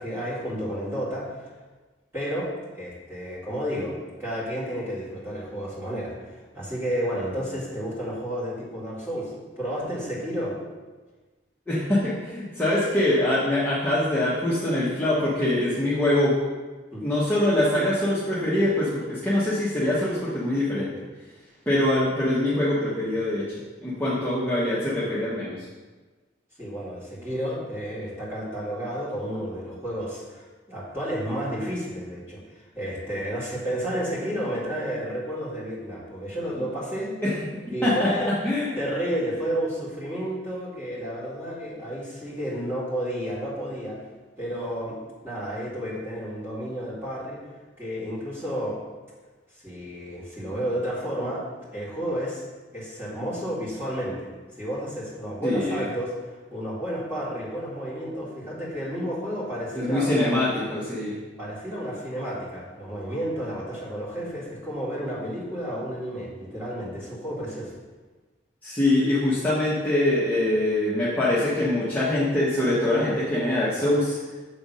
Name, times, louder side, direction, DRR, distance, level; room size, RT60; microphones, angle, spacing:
voice 1, 0.0-1.5 2.1-10.5 16.9-17.0 26.6-32.4 32.7-37.1 37.7-38.3 38.8-44.0 44.4-45.0 45.2-47.4 47.8-48.8 49.5-51.4 51.7-52.4 52.7-54.3 54.6-60.3 61.4-67.8, equal, 15° right, -8 dB, 2.1 m, -31 dB
voice 2, 11.7-16.3 17.0-20.9 21.7-23.4 23.8-25.6 37.2-37.3 37.8-38.1 38.4-38.7 55.4-55.8 59.7-61.1 68.6-74.2, left 1 dB, 10° left, -10 dB, 1.1 m, -23 dB
7.3 x 3.4 x 5.4 m, 1.3 s
head